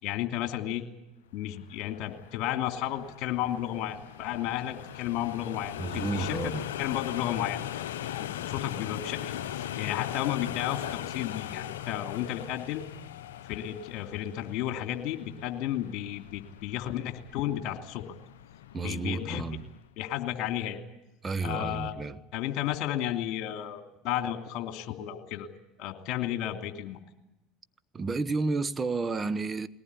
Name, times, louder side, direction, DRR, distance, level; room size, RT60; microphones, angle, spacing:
voice 1, 0.0-0.8 1.3-6.5 6.8-7.6 8.2-12.8 13.4-18.0 18.8-19.4 20.0-20.8 21.4-25.5 25.8-27.0, left 12 dB, 55° left, 2.9 m, -33 dB
City Train Passing by, 1.6-19.9, left 12 dB, 80° left, 0.7 m, -40 dB
voice 2, 5.8-6.6 18.7-19.7 21.2-22.2 27.9-29.7, right 3 dB, 25° right, 1.1 m, -31 dB
21.5 x 18.5 x 9.8 m
hypercardioid pair, 80°, 0 cm